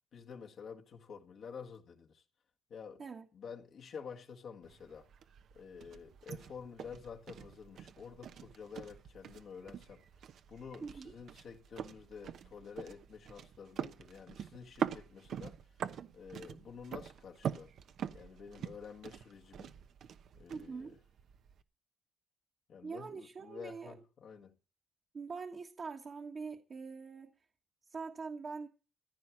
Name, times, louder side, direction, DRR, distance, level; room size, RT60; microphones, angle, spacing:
voice 1, 0.1-2.2 2.7-3.0 3.3-5.1 5.5-10.1 10.5-15.6 16.1-17.7 18.1-19.7 20.3-21.0 22.7-24.5, left 6 dB, 65° left, 1.7 m, -49 dB
sound 1, 4.6-21.6, right 8 dB, 70° right, 1.0 m, -44 dB
voice 2, 10.8-11.1 20.5-21.0 22.8-24.0 25.1-27.3 27.9-28.7, right 4 dB, 45° right, 1.5 m, -43 dB
15.0 x 10.0 x 6.2 m
cardioid pair, 90°, 0 cm